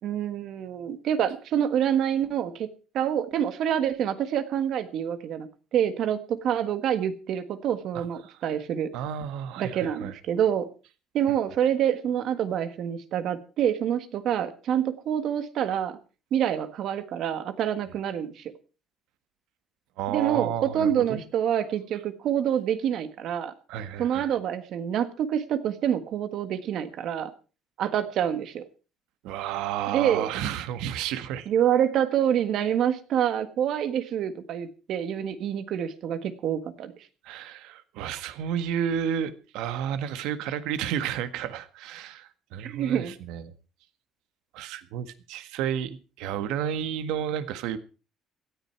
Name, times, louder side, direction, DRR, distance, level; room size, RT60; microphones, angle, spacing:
voice 1, 0.0-2.7 2.9-8.9 9.6-10.7 11.1-16.0 16.3-18.5 20.1-23.5 24.0-27.3 27.8-28.6 29.9-30.3 31.5-36.9 42.6-43.1, right 9 dB, 45° right, 12 dB, 1.5 m, -27 dB
voice 2, 7.9-8.4 8.9-10.1 20.0-21.2 23.7-24.3 29.2-31.5 37.2-43.5 44.5-47.8, right 9 dB, 75° right, 12 dB, 1.6 m, -31 dB
17.5 x 13.0 x 4.6 m, 0.35 s
cardioid pair, 175°, 0 cm